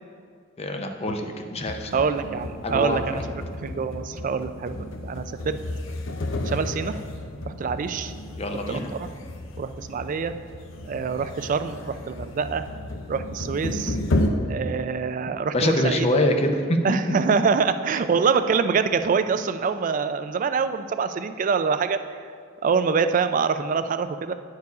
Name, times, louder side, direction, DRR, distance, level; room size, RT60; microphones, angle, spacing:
voice 1, 0.6-1.9 2.6-3.3 8.4-8.9 15.5-16.8, left 1 dB, 30° left, 4 dB, 0.5 m, -25 dB
sound 1, 1.7-14.3, left 1 dB, 80° left, 0.6 m, -32 dB
voice 2, 1.9-3.2 3.6-5.6 6.4-7.1 7.5-8.1 8.5-9.1 9.6-10.3 10.8-12.6 13.1-14.0 14.5-16.1 16.8-22.3 22.6-24.3, right 5 dB, 40° right, 10 dB, 0.3 m, -25 dB
9.5 x 4.6 x 4.8 m, 2.2 s
head